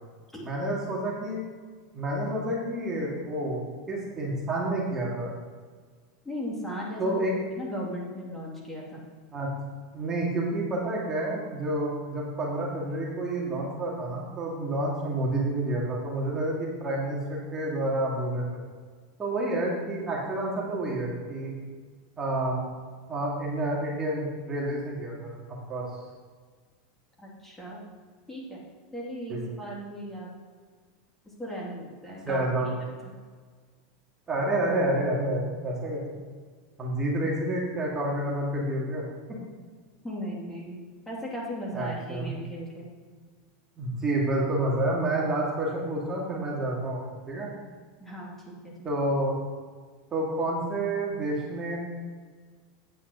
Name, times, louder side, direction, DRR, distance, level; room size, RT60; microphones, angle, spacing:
voice 1, 0.4-1.4 1.9-3.6 3.9-5.3 7.0-7.3 9.3-9.5 9.9-18.6 19.2-21.5 22.2-22.7 23.1-25.8 29.3-29.4 32.2-32.7 34.3-36.2 36.8-39.0 39.3-39.4 41.7-42.3 43.8-47.5 48.8-49.4 50.1-51.8, right 1 dB, 25° right, -4 dB, 2.5 m, -29 dB
voice 2, 6.2-7.1 7.6-9.0 27.2-27.9 28.3-28.6 28.9-30.3 31.4-32.5 33.0-33.1 40.0-40.8 41.1-42.9 48.0-48.7, equal, 10° left, -4 dB, 2.8 m, -37 dB
8.9 x 5.5 x 6.6 m, 1.6 s
hypercardioid pair, 105°, 2 cm